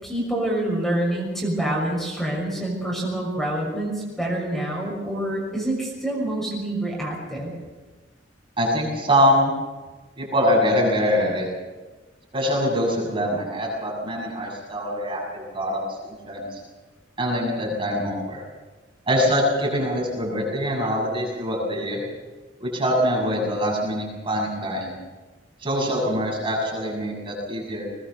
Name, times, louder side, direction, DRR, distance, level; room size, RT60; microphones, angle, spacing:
voice 1, 0.0-7.5, right 1 dB, ahead, -3 dB, 6.3 m, -26 dB
voice 2, 8.6-9.5 10.2-11.5 12.3-15.8 16.3-16.6 17.2-18.4 19.1-22.0 22.6-25.0 25.6-27.8, equal, 30° right, -2 dB, 7.1 m, -23 dB
21.5 x 20.5 x 6.9 m, 1.2 s
head